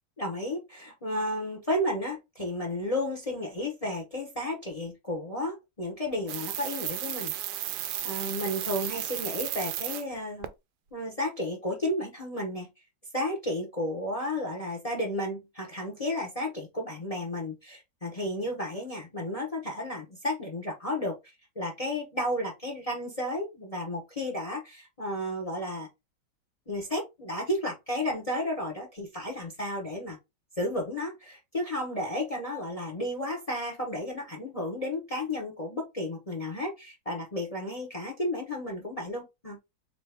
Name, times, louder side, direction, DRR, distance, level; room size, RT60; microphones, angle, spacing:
voice 1, 0.2-7.3 8.0-10.5 10.9-12.7 13.1-21.2 21.6-25.9 26.7-30.2 30.6-39.6, left 1 dB, 30° left, 0.6 m, -32 dB
sound 1, 6.3-10.0 10.4-10.5, right 12 dB, 75° right, 1.0 m, -34 dB
4.1 x 2.9 x 3.4 m
omnidirectional pair, 2.1 m